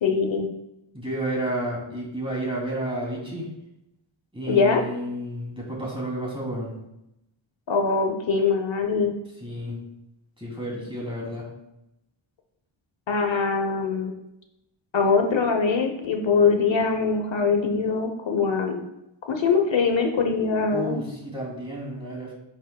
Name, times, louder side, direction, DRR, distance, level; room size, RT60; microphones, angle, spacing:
voice 1, 0.0-0.5 4.5-4.8 7.7-9.2 13.1-14.1 14.9-18.9 19.3-21.0, left 5 dB, 65° left, 4 dB, 0.9 m, -22 dB
voice 2, 0.9-3.5 4.3-6.7 9.4-9.8 10.4-11.5 20.7-22.3, right 1 dB, 10° right, -4 dB, 2.9 m, -31 dB
9.3 x 6.9 x 2.3 m, 0.86 s
wide cardioid pair, 100°, 49 cm